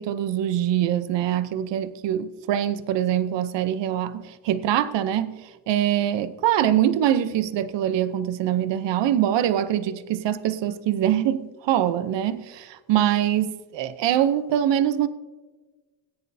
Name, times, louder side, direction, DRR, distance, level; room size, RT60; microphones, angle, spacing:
voice 1, 0.0-15.1, right 11 dB, 65° right, 0.8 m, -24 dB
18.0 x 9.8 x 2.7 m
cardioid pair, 145°, 47 cm